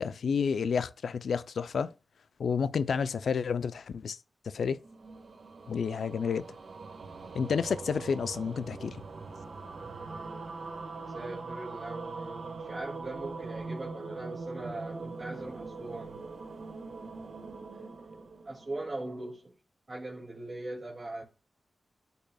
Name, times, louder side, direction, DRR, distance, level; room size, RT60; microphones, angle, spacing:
voice 1, 0.0-1.9 2.4-4.2 4.5-4.8 5.7-6.4 7.3-9.0, left 6 dB, 80° left, 0.4 m, -30 dB
sound 1, 4.7-19.2, right 3 dB, 70° right, 1.5 m, -42 dB
voice 2, 9.8-10.5 11.0-16.2 17.7-18.2 18.5-19.5 19.9-21.2, right 2 dB, 40° right, 2.2 m, -41 dB
8.6 x 5.4 x 2.3 m
cardioid pair, 65°, 0 cm